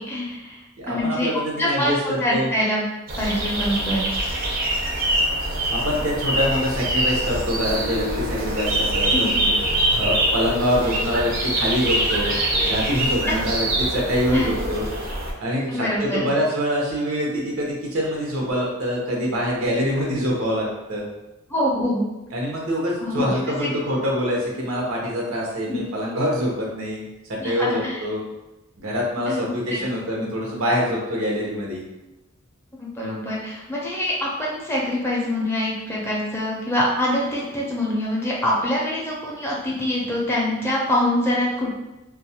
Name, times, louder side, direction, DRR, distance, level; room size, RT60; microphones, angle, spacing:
voice 1, 0.0-0.6 0.9-1.3 1.6-2.8 3.2-4.1 9.1-9.4 13.2-13.3 14.3-14.5 15.7-16.3 21.5-22.0 23.0-23.3 23.6-23.7 25.7-25.8 27.4-28.0 29.3-29.8 32.8-41.7, left 1 dB, 10° left, -4 dB, 0.4 m, -24 dB
voice 2, 0.8-2.5 5.7-9.5 10.0-12.3 12.6-14.9 15.4-21.0 22.3-27.0 27.3-28.2 28.8-31.8, equal, 90° right, -3 dB, 0.7 m, -25 dB
sound 1, 3.1-15.3, right 1 dB, 45° right, 0.5 m, -24 dB
2.2 x 2.0 x 2.7 m, 1.0 s
head